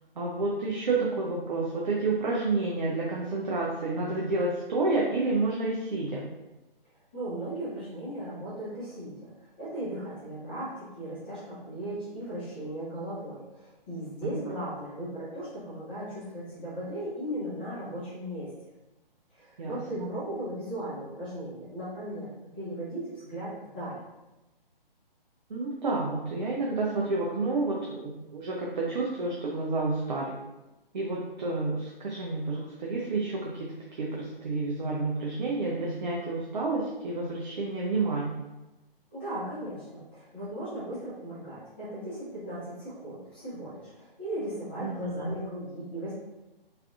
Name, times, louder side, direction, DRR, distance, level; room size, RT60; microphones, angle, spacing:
voice 1, 0.2-6.2 14.2-14.5 19.6-20.1 25.5-30.4 30.9-38.4 44.8-45.3, right 3 dB, 50° right, -3 dB, 0.5 m, -30 dB
voice 2, 7.1-18.5 19.3-24.0 39.1-46.1, right 1 dB, 10° left, -12 dB, 0.4 m, -37 dB
3.2 x 2.5 x 2.4 m, 1.0 s
figure-of-eight pair, 140°, 29 cm